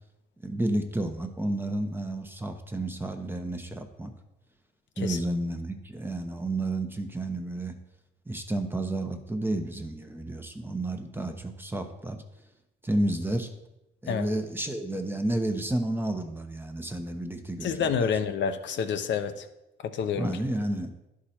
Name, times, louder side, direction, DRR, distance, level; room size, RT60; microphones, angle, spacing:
voice 1, 0.4-4.1 5.0-7.7 8.3-12.2 12.8-13.5 14.0-17.7 18.0-18.1 20.2-20.9, right 1 dB, 10° right, 5 dB, 1.0 m, -31 dB
voice 2, 17.6-19.5 19.9-20.4, left 7 dB, 65° left, 7 dB, 0.8 m, -28 dB
11.0 x 4.8 x 4.3 m, 0.92 s
cardioid pair, 90°, 20 cm